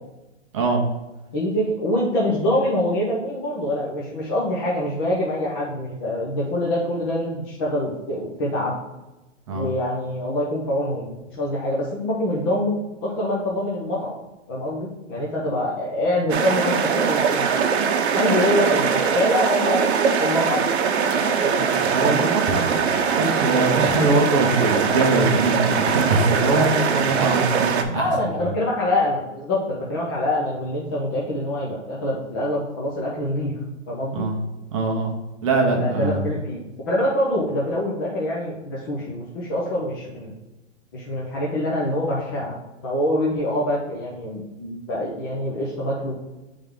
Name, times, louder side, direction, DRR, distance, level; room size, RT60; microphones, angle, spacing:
voice 1, 0.5-0.8 9.5-9.7 21.4-28.1 28.4-28.5 34.1-34.4 34.7-35.2 35.4-36.3, right 3 dB, 25° right, 2 dB, 0.7 m, -23 dB
voice 2, 1.3-8.8 9.5-12.7 13.0-14.1 14.5-17.5 18.1-19.8 20.2-20.6 21.1-21.7 27.9-33.5 33.9-34.3 35.6-40.3 40.9-42.6 42.8-46.1, left 1 dB, 15° left, -5 dB, 0.6 m, -25 dB
sound 1, 16.3-27.8, right 6 dB, 60° right, 0.8 m, -21 dB
8.4 x 3.5 x 3.6 m, 1.0 s
hypercardioid pair, 165°, 37 cm